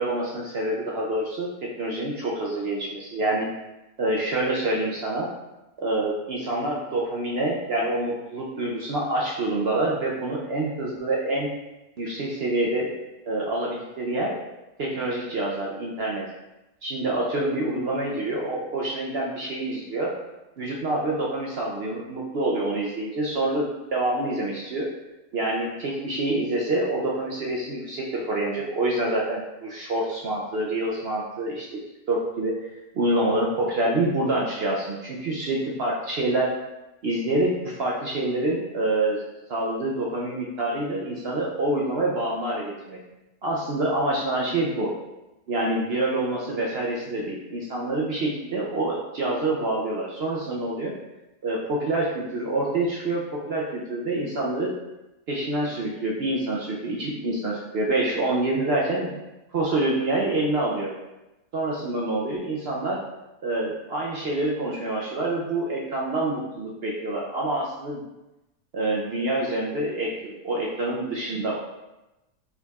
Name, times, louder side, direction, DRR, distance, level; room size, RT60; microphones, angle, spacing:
voice 1, 0.0-3.5 4.0-5.3 5.8-11.5 12.0-12.9 13.2-14.5 14.8-16.3 16.8-20.1 20.6-24.9 25.3-31.8 32.1-32.7 32.9-36.6 37.0-39.2 39.5-43.0 43.4-44.9 45.5-50.9 51.4-54.8 55.3-59.2 59.5-60.9 61.5-63.1 63.4-68.0 68.7-71.6, right 2 dB, 65° right, -3 dB, 0.6 m, -26 dB
4.6 x 3.9 x 2.3 m, 0.99 s
omnidirectional pair, 1.6 m